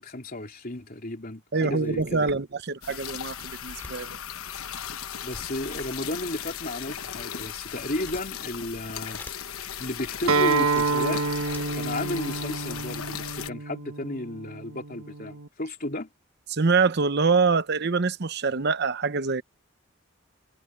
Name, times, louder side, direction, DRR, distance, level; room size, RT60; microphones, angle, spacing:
voice 1, 0.0-2.3 5.2-9.2 9.6-11.2 11.7-16.1, left 1 dB, 45° left, 3.5 m, -33 dB
sound 1, 0.8-0.9 1.3-1.4 1.7-2.6 3.1-4.0 5.3-6.4 7.0-8.5 8.9-9.6 10.2-10.3 10.8-11.7 12.3-12.4 12.6-13.1, left 1 dB, 10° left, 5.2 m, -49 dB
voice 2, 1.5-4.2 16.5-19.4, right 4 dB, 50° right, 0.8 m, -25 dB
sound 2, 2.8-13.5, left 9 dB, 90° left, 1.1 m, -37 dB
Acoustic guitar, 10.3-15.5, right 4 dB, 90° right, 1.5 m, -28 dB
head